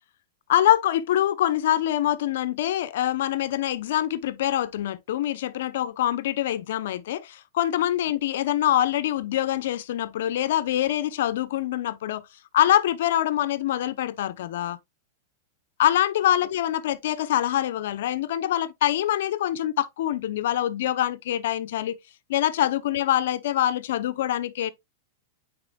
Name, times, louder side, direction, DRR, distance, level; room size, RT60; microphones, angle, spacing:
voice 1, 0.5-12.2 12.5-14.8 15.8-22.0 22.3-24.7, left 12 dB, 70° left, 0.7 m, -24 dB
9.6 x 4.3 x 2.3 m
supercardioid pair, 145°, 0 cm